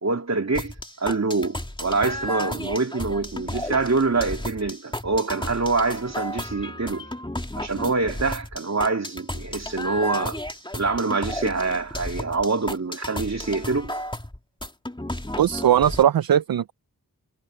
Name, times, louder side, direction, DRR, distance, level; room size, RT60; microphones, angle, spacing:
voice 1, 0.0-7.1 7.6-10.4 10.7-13.9, right 3 dB, 45° right, 2.8 m, -25 dB
sound 1, 0.5-16.0, left 1 dB, 10° left, 2.5 m, -33 dB
voice 2, 15.4-16.7, right 10 dB, 65° right, 0.6 m, -19 dB
cardioid pair, 45°, 38 cm